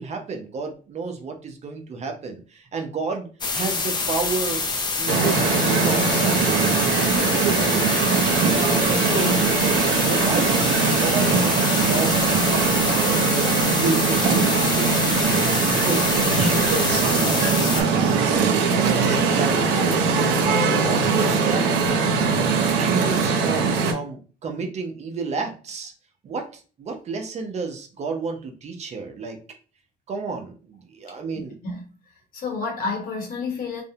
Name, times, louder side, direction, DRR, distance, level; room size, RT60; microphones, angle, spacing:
voice 1, 0.0-4.6 5.0-5.4 5.6-8.0 8.9-9.4 10.1-12.1 13.6-15.1 15.7-20.1 20.6-21.9 22.7-25.9 26.2-26.5 26.8-29.4 30.1-31.6, right 4 dB, 40° right, 0.5 m, -31 dB
sound 1, 3.4-17.8, left 4 dB, 25° left, 0.4 m, -26 dB
sound 2, 5.1-23.9, right 5 dB, 90° right, 0.6 m, -21 dB
voice 2, 31.3-31.8 32.3-33.8, left 4 dB, 60° left, 0.9 m, -30 dB
2.5 x 2.0 x 2.7 m
cardioid pair, 110°, 17 cm